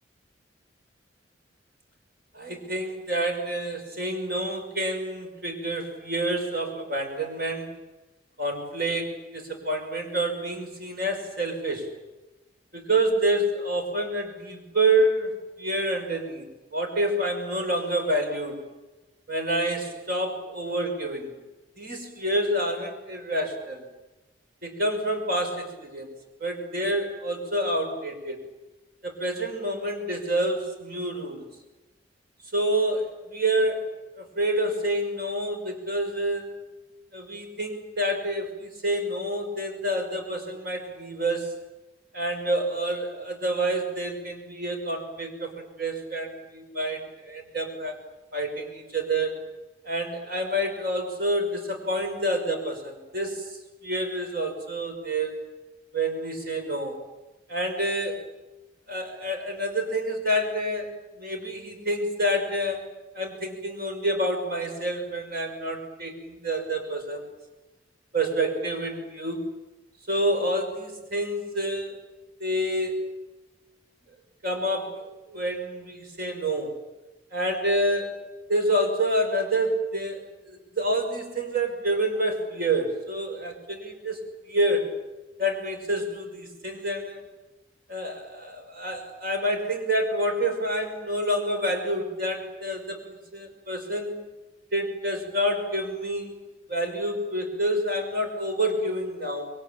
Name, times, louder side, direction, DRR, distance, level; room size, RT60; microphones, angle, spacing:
voice 1, 2.3-7.8 8.4-11.9 12.7-15.3 15.6-18.6 19.3-21.4 21.8-23.9 24.6-26.1 26.4-28.4 29.0-31.5 32.5-33.9 34.2-36.6 37.1-41.5 42.1-48.0 48.3-49.4 49.8-53.6 53.8-55.4 55.9-57.0 57.5-58.3 58.9-60.9 61.2-62.9 63.1-67.2 68.1-69.5 70.1-72.0 72.4-73.1 74.4-76.7 77.3-78.2 78.5-84.2 84.5-84.9 85.4-87.2 87.9-94.2 94.7-96.3 96.7-99.5, right 1 dB, 55° right, 4 dB, 5.7 m, -28 dB
27.5 x 23.0 x 9.0 m, 1.1 s
head